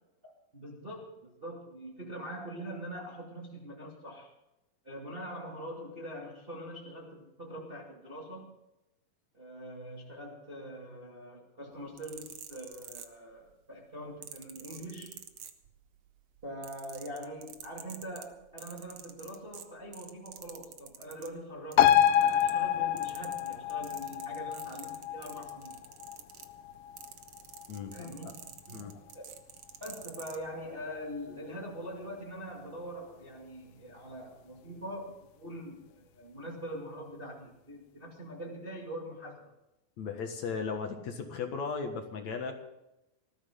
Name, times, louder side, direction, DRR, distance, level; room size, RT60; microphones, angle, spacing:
voice 1, 0.2-4.3 4.8-8.5 9.3-15.2 16.4-21.9 22.2-25.8 27.9-29.4 29.8-39.5, equal, 20° right, -2 dB, 2.0 m, -43 dB
sound 1, 11.8-13.5 14.2-16.0 16.3-21.3 21.7-22.7 23.0-30.4 31.1-31.3, right 9 dB, 65° right, 1.5 m, -48 dB
sound 2, 21.8-28.7 29.1-29.2, left 10 dB, 80° left, 2.4 m, -28 dB
voice 2, 27.7-28.3 28.7-28.9 40.0-42.6, left 5 dB, 60° left, 4 dB, 2.5 m, -36 dB
19.5 x 14.0 x 3.8 m, 0.91 s
omnidirectional pair, 4.2 m